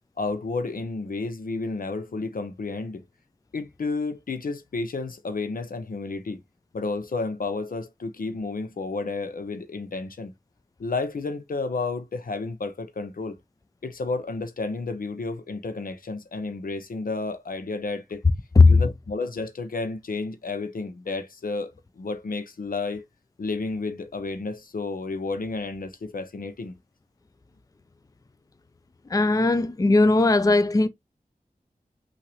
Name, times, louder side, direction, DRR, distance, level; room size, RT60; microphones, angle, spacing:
voice 1, 0.2-3.0 3.5-6.4 6.7-10.3 10.8-13.4 13.8-18.2 18.7-23.0 23.4-26.8 29.8-30.0, left 3 dB, 75° left, 0.8 m, -31 dB
voice 2, 29.1-30.9, left 3 dB, 25° left, 0.4 m, -17 dB
5.8 x 2.7 x 3.1 m
cardioid pair, 45°, 15 cm